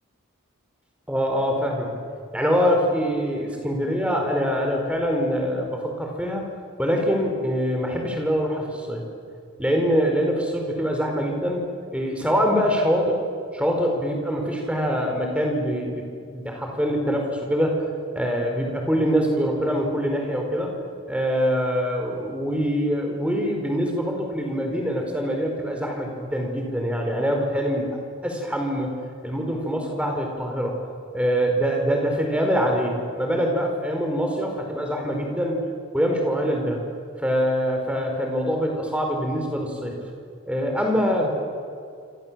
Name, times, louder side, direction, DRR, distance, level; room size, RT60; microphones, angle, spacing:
voice 1, 1.1-1.9 2.3-6.4 6.8-9.0 9.6-13.2 13.5-17.8 18.1-20.7 21.1-27.9 28.2-30.8 31.1-35.6 35.9-36.8 37.2-40.0 40.5-41.3, equal, 5° right, 2 dB, 4.6 m, -24 dB
27.5 x 26.5 x 7.6 m, 2.4 s
head